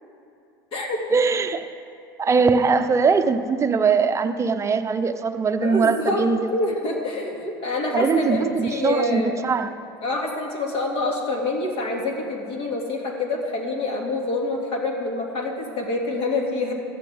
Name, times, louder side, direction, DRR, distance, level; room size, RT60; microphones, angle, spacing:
voice 1, 1.1-1.7 2.2-6.5 7.9-9.7, right 5 dB, 25° right, 9 dB, 0.7 m, -21 dB
voice 2, 5.6-6.3 6.5-9.3 10.0-16.7, left 2 dB, 45° left, 1 dB, 2.3 m, -26 dB
15.0 x 11.0 x 3.5 m, 2.6 s
hypercardioid pair, 85°, 13 cm